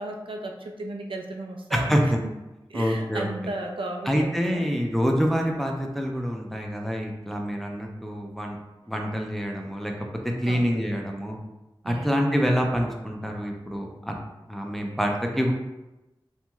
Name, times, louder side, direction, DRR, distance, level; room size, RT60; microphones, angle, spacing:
voice 1, 0.0-2.3 2.7-4.7 5.3-5.5 10.5-10.7 11.8-12.1, right 2 dB, 75° right, 2 dB, 0.4 m, -35 dB
voice 2, 1.7-2.0 2.7-3.3 4.1-8.6 8.9-9.9 10.2-11.4 11.9-14.1 14.5-15.5, equal, 5° left, 1 dB, 0.4 m, -26 dB
3.0 x 2.6 x 2.3 m, 1.0 s
wide cardioid pair, 65°, 9 cm